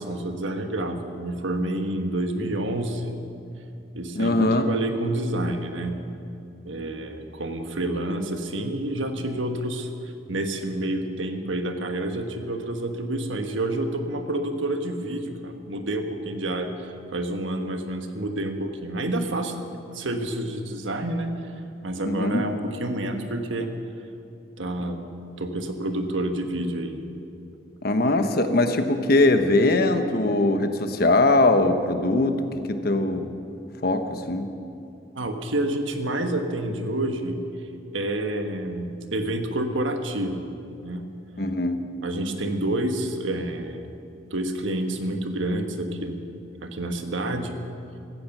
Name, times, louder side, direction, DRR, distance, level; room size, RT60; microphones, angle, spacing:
voice 1, 0.0-3.2 3.9-6.0 6.6-9.9 10.3-19.5 19.9-21.3 21.8-23.7 24.6-25.1 25.4-27.1 35.1-37.4 37.9-40.5 40.8-41.0 42.0-43.8 44.3-46.2 46.6-47.6, right 1 dB, 85° right, 5 dB, 1.4 m, -28 dB
voice 2, 4.2-4.7 22.0-22.5 27.8-32.4 32.7-33.3 33.8-34.5 41.4-41.8, left 2 dB, 50° left, 7 dB, 1.1 m, -21 dB
16.0 x 14.5 x 6.0 m, 2.6 s
head